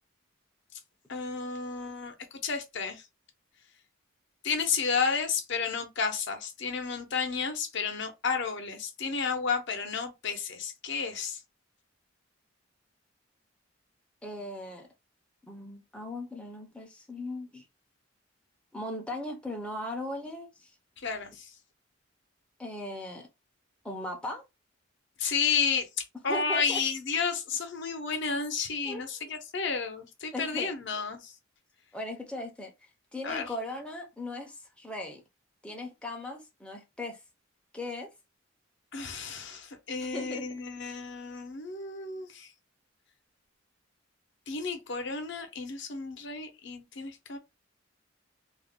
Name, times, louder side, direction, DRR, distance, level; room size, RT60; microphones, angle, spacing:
voice 1, 1.1-2.1 2.4-3.0 4.4-11.4 21.0-21.5 25.2-25.9 26.2-31.3 33.2-33.5 38.9-42.5 44.5-47.4, left 5 dB, 60° left, 0.6 m, -32 dB
voice 2, 14.2-14.9 15.5-17.6 18.7-20.7 22.6-23.3 23.8-24.4 26.3-26.8 28.8-29.0 30.3-30.7 31.9-35.2 35.6-37.2 37.7-38.1 39.9-40.5, left 1 dB, 5° left, 0.4 m, -38 dB
2.4 x 2.0 x 3.5 m
head